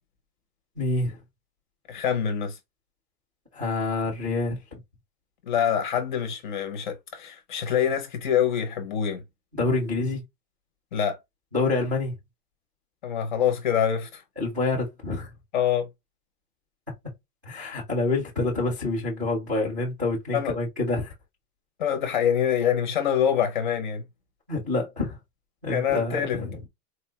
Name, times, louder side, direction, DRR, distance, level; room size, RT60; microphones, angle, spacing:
voice 1, 0.8-1.2 3.5-4.8 9.5-10.2 11.5-12.1 14.4-15.3 17.4-21.1 24.5-25.2 25.6-26.6, left 2 dB, 15° right, 0.4 m, -27 dB
voice 2, 1.9-2.6 5.5-9.2 10.9-11.2 13.0-14.2 15.5-15.9 20.3-20.5 21.8-24.0 25.7-26.4, left 8 dB, 30° left, 0.6 m, -25 dB
4.1 x 2.1 x 2.7 m
supercardioid pair, 180°, 47 cm